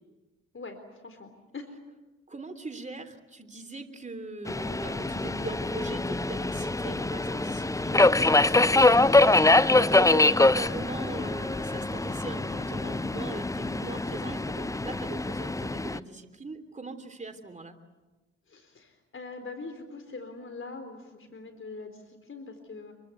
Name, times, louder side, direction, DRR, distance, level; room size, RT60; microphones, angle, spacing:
voice 1, 0.5-1.7 18.5-22.9, left 3 dB, 35° left, 7 dB, 3.9 m, -43 dB
voice 2, 2.3-17.7, right 3 dB, 20° right, 7 dB, 3.3 m, -40 dB
Subway metro underground, 4.5-16.0, left 2 dB, 10° left, 0.8 m, -24 dB
26.0 x 23.5 x 8.2 m, 1.1 s
figure-of-eight pair, 40°, 35 cm